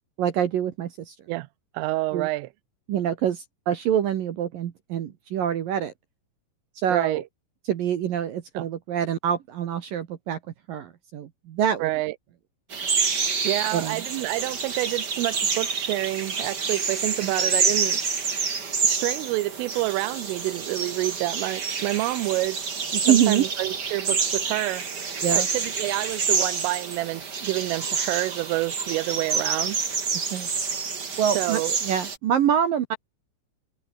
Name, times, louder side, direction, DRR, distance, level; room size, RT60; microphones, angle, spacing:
voice 1, 0.2-1.1 2.1-2.3 2.9-5.9 6.8-7.2 7.7-10.4 10.7-11.9 13.7-14.0 17.2-17.3 23.1-23.4 25.2-25.5 30.3-30.5 31.2-33.0, right 9 dB, 65° right, 2.4 m, -25 dB
voice 2, 1.7-2.5 6.9-7.2 8.5-8.7 11.8-12.2 13.4-18.0 18.5-29.8 31.3-31.8, right 20 dB, 90° right, 3.4 m, -28 dB
sound 1, 12.7-32.2, right 5 dB, 35° right, 1.8 m, -28 dB
omnidirectional pair, 5.6 m